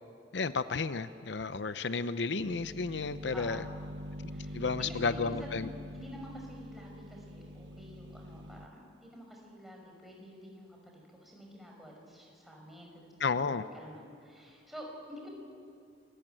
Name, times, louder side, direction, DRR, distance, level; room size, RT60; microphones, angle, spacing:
voice 1, 0.3-3.6 4.5-5.7 13.2-13.6, left 4 dB, 75° left, 12 dB, 0.7 m, -32 dB
sound 1, 2.4-8.7, equal, 85° right, 1.1 m, -44 dB
voice 2, 3.3-3.7 4.3-5.5 5.9-15.3, equal, ahead, -1 dB, 5.5 m, -49 dB
27.5 x 21.0 x 9.0 m, 2.4 s
head